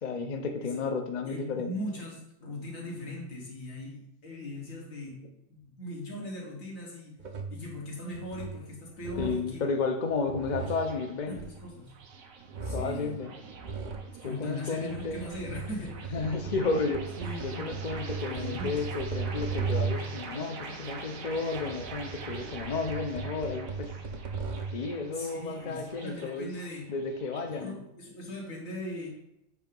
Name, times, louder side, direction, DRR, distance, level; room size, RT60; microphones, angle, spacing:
voice 1, 0.0-1.7 9.2-11.4 12.7-13.4 14.2-15.2 16.1-17.1 17.4-24.0 24.7-26.5 26.9-27.8, left 4 dB, 45° left, 5 dB, 0.6 m, -32 dB
voice 2, 0.6-1.0 1.2-5.2 5.5-7.2 7.5-9.6 10.6-10.7 11.3-11.9 12.6-13.2 14.2-16.1 17.1-17.6 18.3-18.9 25.1-26.9 27.4-29.1, left 1 dB, 80° left, -2 dB, 2.1 m, -40 dB
sound 1, 7.2-7.7 8.1-8.7 9.0-9.6 10.1-12.1 12.5-13.1 13.6-14.1 14.8-20.2 21.2-24.9, right 5 dB, 45° right, 0.7 m, -37 dB
sound 2, 8.7-27.6, right 4 dB, 85° right, 1.3 m, -45 dB
8.2 x 2.9 x 5.2 m, 0.85 s
omnidirectional pair, 1.4 m